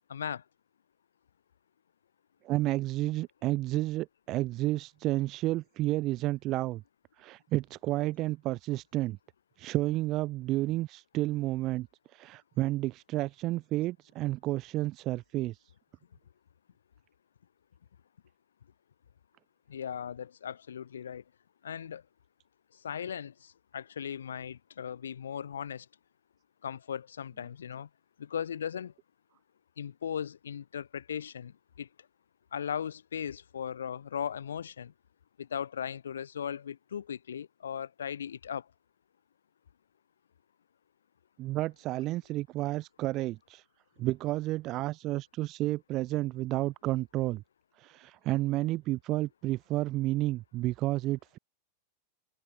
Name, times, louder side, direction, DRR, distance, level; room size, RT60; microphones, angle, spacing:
voice 1, 0.1-0.4 19.7-21.2 21.6-22.0 22.8-25.9 26.6-27.9 28.2-28.9 29.8-31.9 32.5-34.9 35.4-38.6, left 8 dB, 65° left, 5.5 m, -37 dB
voice 2, 2.4-6.8 7.2-9.2 9.6-15.6 41.4-43.6 44.0-47.4 47.8-51.4, right 17 dB, 35° right, 2.6 m, -31 dB
figure-of-eight pair, 90°, 0 cm